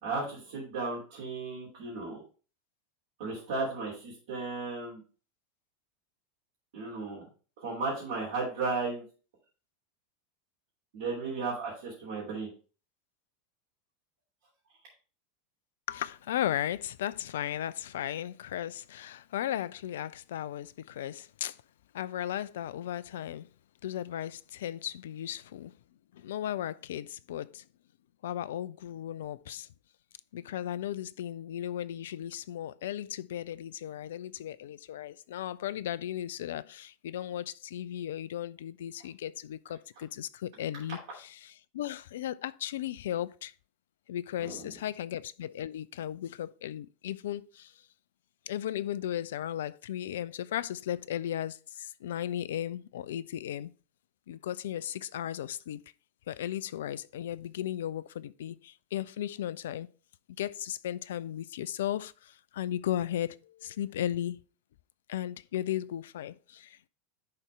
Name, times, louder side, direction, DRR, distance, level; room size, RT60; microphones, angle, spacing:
voice 1, 0.0-2.2 3.2-5.0 6.7-7.3 7.6-9.0 10.9-12.5 44.4-44.7, right 3 dB, 60° right, 2.8 m, -35 dB
voice 2, 15.9-21.6 21.9-23.5 23.8-25.7 26.1-27.6 28.2-29.7 30.3-41.0 41.4-43.5 44.1-47.7 48.5-53.7 54.3-55.8 56.3-59.9 60.4-64.4 65.1-66.9, left 11 dB, 65° left, 0.4 m, -36 dB
10.5 x 4.1 x 3.4 m
figure-of-eight pair, 85°, 0 cm